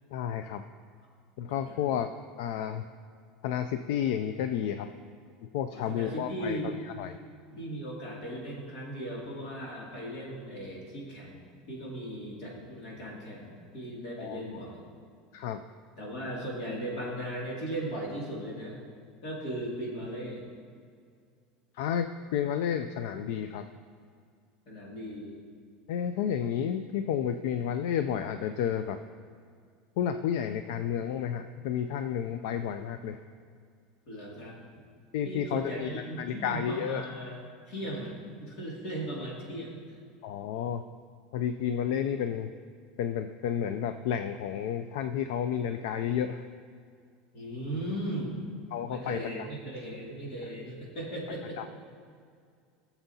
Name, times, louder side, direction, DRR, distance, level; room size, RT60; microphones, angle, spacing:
voice 1, 0.1-0.6 1.4-2.1 2.4-2.9 3.4-4.9 5.5-6.6 7.0-7.1 14.2-14.6 15.3-15.6 21.8-23.6 25.9-29.0 30.0-33.2 35.1-35.9 36.2-37.1 40.2-40.8 41.3-42.5 43.0-46.4 48.7-49.2 51.6-51.7, left 9 dB, 65° left, 9 dB, 0.3 m, -31 dB
voice 2, 1.5-1.8 5.7-6.8 7.5-11.4 11.7-14.9 16.0-18.8 19.2-20.4 24.7-25.4 34.1-34.6 35.2-37.3 37.7-40.0 47.3-48.4 48.9-51.7, right 1 dB, 45° left, -3 dB, 2.3 m, -37 dB
19.0 x 7.0 x 2.8 m, 2.2 s
cardioid pair, 175°, 0 cm